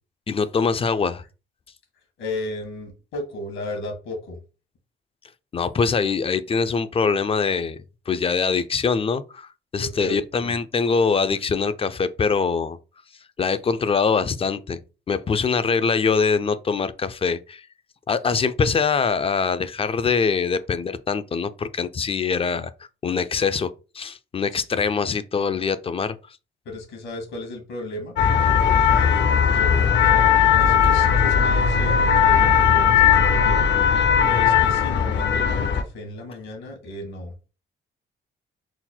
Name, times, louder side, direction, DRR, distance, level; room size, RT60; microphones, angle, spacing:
voice 1, 0.3-1.2 5.5-7.8 8.1-12.8 13.4-14.8 15.1-17.7 18.1-22.7 23.0-23.7 23.9-26.2, left 5 dB, 30° left, 0.4 m, -23 dB
voice 2, 2.2-4.4 9.8-10.6 24.7-24.8 26.6-28.1 28.8-30.3 30.6-33.7 34.2-37.5, left 1 dB, 80° left, 1.6 m, -35 dB
sound 1, 28.2-35.8, left 7 dB, 65° left, 0.6 m, -18 dB
3.9 x 2.1 x 4.3 m
cardioid pair, 90°, 20 cm